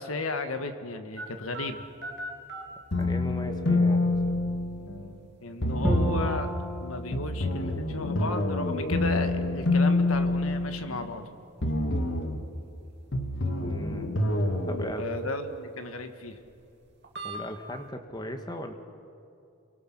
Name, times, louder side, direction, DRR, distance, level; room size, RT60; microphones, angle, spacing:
voice 1, 0.0-1.8 5.4-6.5 6.8-11.2 15.0-16.4, left 3 dB, 85° left, 8 dB, 1.6 m, -34 dB
sound 1, 1.2-17.9, right 5 dB, 55° right, 2.5 m, -44 dB
sound 2, 2.9-5.2 5.6-6.4 7.1-11.2 11.6-12.4 13.1-14.9, left 2 dB, 60° left, 1.6 m, -27 dB
voice 2, 3.0-4.2 13.6-14.3 14.7-15.1 17.2-18.7, left 1 dB, 20° left, 6 dB, 1.5 m, -37 dB
Bowed string instrument, 5.8-9.0, right 1 dB, 5° left, 3.3 m, -32 dB
27.5 x 23.5 x 6.1 m, 2.6 s
head